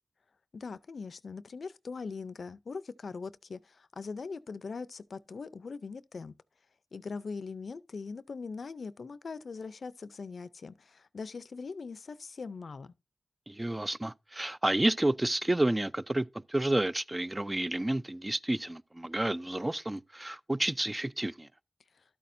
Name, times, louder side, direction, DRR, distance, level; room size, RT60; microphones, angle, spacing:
voice 1, 0.5-6.3 6.9-12.9, left 4 dB, 80° left, 0.5 m, -41 dB
voice 2, 13.5-21.5, right 1 dB, 25° right, 0.4 m, -30 dB
12.0 x 8.5 x 2.6 m
cardioid pair, 40°, 0 cm